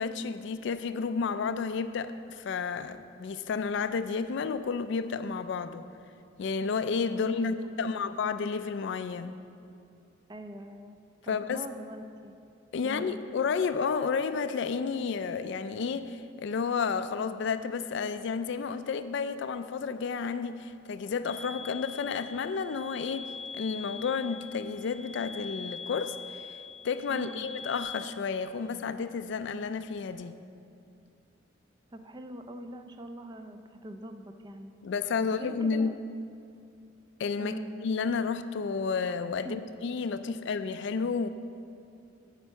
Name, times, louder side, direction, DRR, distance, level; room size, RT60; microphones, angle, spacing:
voice 1, 0.0-5.8 6.4-9.4 11.3-11.6 12.7-26.6 26.8-30.4 34.8-35.9 37.2-37.5 37.8-41.3, left 5 dB, 65° left, 11 dB, 0.4 m, -31 dB
voice 2, 7.4-8.0 10.3-11.0 11.2-12.3 12.8-13.2 27.1-27.5 31.9-34.7 35.2-36.0 37.4-37.8 39.4-39.6, right 1 dB, 20° right, 7 dB, 0.4 m, -42 dB
sound 1, 21.3-27.8, left 4 dB, 40° right, 2.0 m, -43 dB
8.2 x 5.3 x 7.1 m, 2.6 s
head